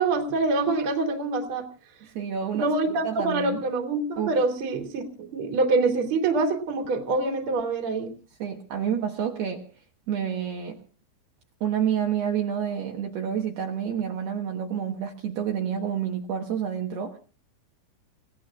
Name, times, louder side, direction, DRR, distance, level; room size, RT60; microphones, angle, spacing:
voice 1, 0.0-1.7 2.5-8.1, right 3 dB, 35° right, 3 dB, 2.5 m, -25 dB
voice 2, 2.0-2.7 3.0-3.6 4.2-4.4 8.4-10.8 11.6-17.2, right 8 dB, 65° right, 1 dB, 2.8 m, -29 dB
29.5 x 17.0 x 2.4 m, 0.36 s
omnidirectional pair, 5.8 m